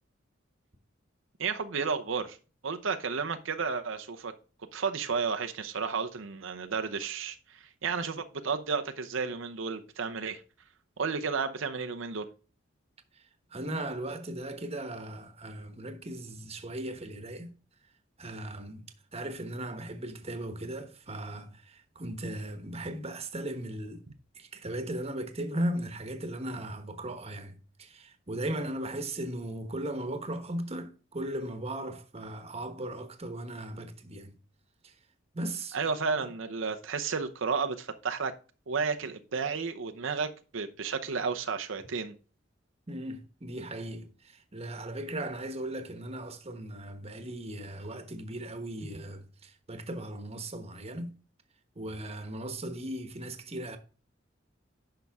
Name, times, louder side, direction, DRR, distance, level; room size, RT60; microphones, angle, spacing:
voice 1, 1.4-2.4 2.6-4.3 4.7-10.4 11.0-12.3 35.7-38.3 38.7-42.1, right 5 dB, 90° right, 0.8 m, -32 dB
voice 2, 13.5-17.5 18.2-24.0 24.3-34.3 34.8-34.9 35.3-35.8 36.2-36.3 42.9-51.1 51.7-53.8, right 1 dB, 35° right, 1.2 m, -37 dB
10.5 x 5.8 x 3.6 m
head